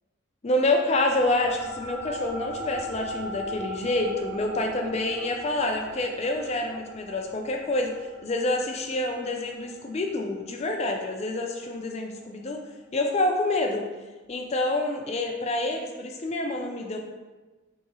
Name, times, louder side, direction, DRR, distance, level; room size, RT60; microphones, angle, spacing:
voice 1, 0.4-7.9 8.2-12.6 12.9-13.8 14.3-17.0, left 2 dB, 30° left, 2 dB, 0.4 m, -27 dB
sound 1, 0.9-11.7, equal, 5° left, 0.7 m, -40 dB
4.8 x 2.7 x 2.8 m, 1.2 s
head